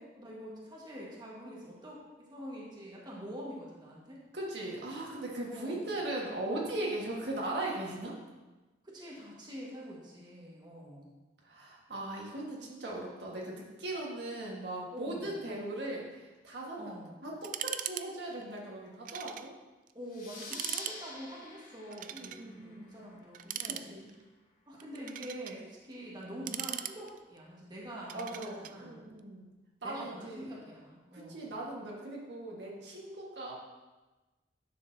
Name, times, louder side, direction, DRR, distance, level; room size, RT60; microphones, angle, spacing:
voice 1, 0.0-4.2 5.5-5.9 8.8-11.1 14.9-15.4 16.8-17.2 19.9-23.8 24.7-29.0 29.8-31.5, equal, 25° right, -5 dB, 1.6 m, -45 dB
voice 2, 4.3-8.1 11.4-16.9 17.2-19.5 22.1-22.9 23.8-24.1 28.1-29.5 29.8-30.5 31.1-33.5, right 1 dB, 75° right, -3 dB, 1.6 m, -39 dB
sound 1, 17.4-18.1 18.3-18.4 19.1-19.5 19.9-20.0 20.4-21.0 21.9-22.4 23.3-24.2 24.8-25.6 26.2-27.4 28.1-28.8, right 11 dB, 50° right, 0.3 m, -39 dB
sound 2, 20.1-23.3, left 2 dB, 50° left, 2.1 m, -47 dB
10.0 x 6.5 x 2.8 m, 1.2 s
head